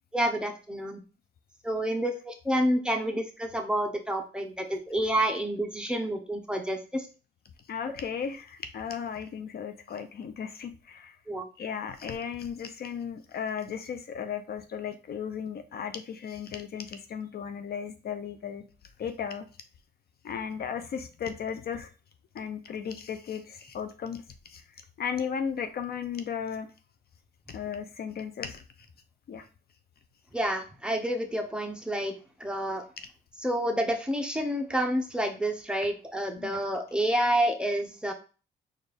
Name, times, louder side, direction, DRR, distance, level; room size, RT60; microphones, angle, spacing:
voice 1, 0.1-1.0 1.6-7.1 11.3-11.5 30.3-32.1 32.4-32.8 33.4-38.1, right 1 dB, 5° right, 3 dB, 0.7 m, -29 dB
voice 2, 7.7-11.2 11.6-18.6 19.0-19.5 20.2-21.9 22.3-24.2 24.5-24.6 25.0-26.7 27.5-28.6 29.3-29.5 36.4-36.6, left 7 dB, 50° left, 9 dB, 0.5 m, -35 dB
4.3 x 2.5 x 3.3 m, 0.34 s
cardioid pair, 90°, 20 cm